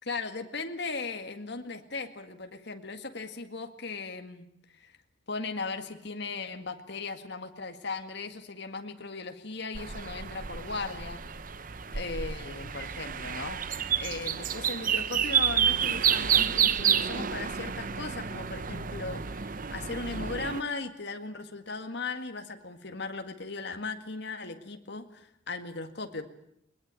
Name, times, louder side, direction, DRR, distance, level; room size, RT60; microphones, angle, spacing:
voice 1, 0.0-4.5 4.8-5.0 5.3-11.2 11.9-26.3, left 3 dB, 65° left, 6 dB, 2.0 m, -37 dB
sound 1, 9.7-20.6, right 8 dB, 50° right, 0.9 m, -29 dB
21.0 x 20.5 x 9.1 m, 0.73 s
head